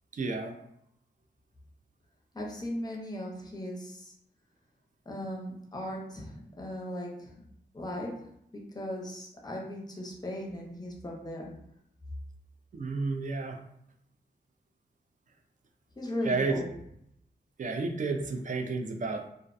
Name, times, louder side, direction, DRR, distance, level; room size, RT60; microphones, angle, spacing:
voice 1, 0.1-0.5 12.7-13.6 16.2-16.6 17.6-19.3, right 3 dB, 45° right, 4 dB, 0.4 m, -31 dB
voice 2, 2.3-4.1 5.1-7.4 7.7-8.3 8.5-11.5 16.0-16.7, left 1 dB, 20° left, -1 dB, 0.6 m, -37 dB
2.4 x 2.0 x 2.5 m, 0.75 s
wide cardioid pair, 90°, 18 cm